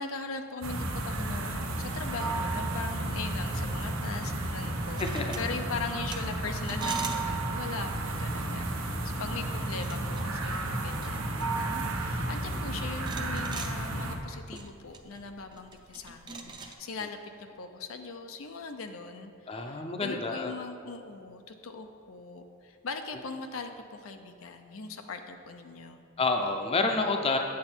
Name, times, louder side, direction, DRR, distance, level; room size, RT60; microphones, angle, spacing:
voice 1, 0.0-26.0, left 4 dB, 80° left, 6 dB, 0.6 m, -40 dB
sound 1, 0.6-14.2, right 2 dB, 90° right, 1.0 m, -32 dB
sound 2, 4.9-16.7, right 4 dB, 20° right, 0.5 m, -44 dB
voice 2, 5.0-5.3 8.4-8.5 8.9-9.0 19.5-20.5 26.2-27.4, left 3 dB, 30° left, 4 dB, 0.6 m, -29 dB
8.5 x 6.9 x 4.4 m, 2.3 s
head